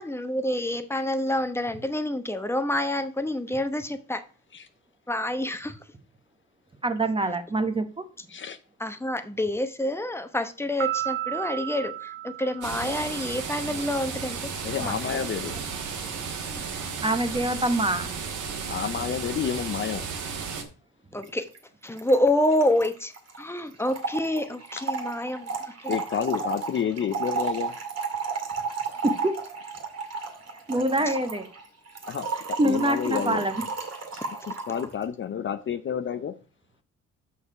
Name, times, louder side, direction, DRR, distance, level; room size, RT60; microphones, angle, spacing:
voice 1, 0.0-4.2 5.1-5.8 8.8-14.5 14.8-15.2 21.1-21.5 21.8-23.1 23.4-26.0 31.1-31.2, left 1 dB, 10° left, 0.9 m, -27 dB
voice 2, 6.8-8.0 17.0-18.1 29.0-29.4 30.7-31.5 32.6-33.6, right 1 dB, 15° right, 0.9 m, -25 dB
Piano, 10.8-13.4, right 13 dB, 40° right, 1.0 m, -33 dB
sound 1, 12.6-20.6, right 6 dB, 80° right, 1.6 m, -34 dB
voice 3, 14.6-15.5 18.7-20.1 25.9-27.8 28.8-28.9 32.1-33.5 34.1-36.3, left 8 dB, 40° left, 0.5 m, -30 dB
Trickle dribble / Fill (with liquid), 21.2-21.3 21.5-21.6 21.8-34.9, right 5 dB, 55° right, 2.0 m, -33 dB
6.4 x 5.5 x 4.8 m
cardioid pair, 90°, 30 cm